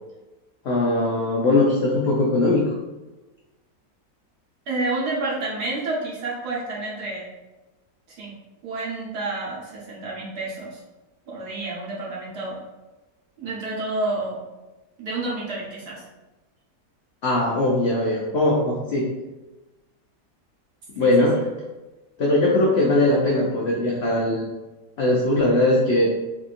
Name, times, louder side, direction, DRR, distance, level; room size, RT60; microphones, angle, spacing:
voice 1, 0.6-2.7 17.2-19.1 20.9-21.5 22.2-24.5 25.0-26.1, left 2 dB, 80° left, -3 dB, 0.5 m, -20 dB
voice 2, 4.7-7.3 8.1-8.3 8.6-10.8 11.3-12.6 13.4-14.4 15.0-16.0 21.0-21.1, right 2 dB, 75° right, -5 dB, 1.6 m, -29 dB
4.1 x 2.7 x 2.5 m, 1.1 s
omnidirectional pair, 1.7 m